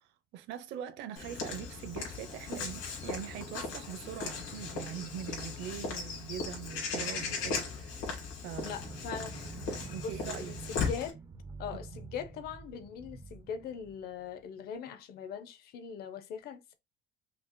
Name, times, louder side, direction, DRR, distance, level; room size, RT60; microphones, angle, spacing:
voice 1, 0.0-8.1 8.4-8.8 9.9-10.6, right 10 dB, 60° right, 0.7 m, -42 dB
Walk footsteps / Bird vocalization bird call bird song, 1.2-11.1, left 4 dB, 80° left, 2.2 m, -38 dB
sound 1, 8.5-14.5, right 4 dB, 15° right, 0.4 m, -47 dB
voice 2, 8.6-9.4 10.0-11.2 11.6-16.7, left 7 dB, 50° left, 0.7 m, -41 dB
5.3 x 2.8 x 2.2 m
cardioid pair, 160°, 21 cm